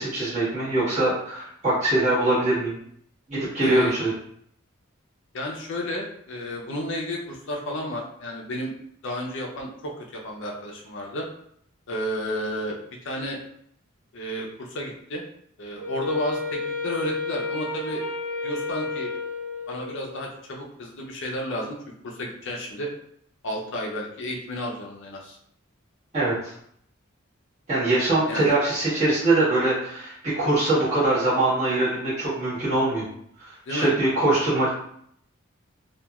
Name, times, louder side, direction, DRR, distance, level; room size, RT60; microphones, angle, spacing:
voice 1, 0.0-2.7 3.3-4.1 26.1-26.5 27.7-33.0 33.7-34.7, right 2 dB, 35° right, -11 dB, 1.4 m, -23 dB
voice 2, 3.6-3.9 5.3-8.7 9.0-11.3 11.9-12.8 13.0-13.4 14.1-15.2 15.6-18.0 18.4-19.1 19.7-21.8 22.0-22.9 23.4-25.4 28.3-28.5 33.1-33.2 33.7-33.9, equal, 60° left, -1 dB, 0.5 m, -32 dB
Wind instrument woodwind instrument, 15.8-20.2, left 3 dB, 80° right, 1.1 m, -31 dB
2.9 x 2.4 x 2.3 m, 0.67 s
head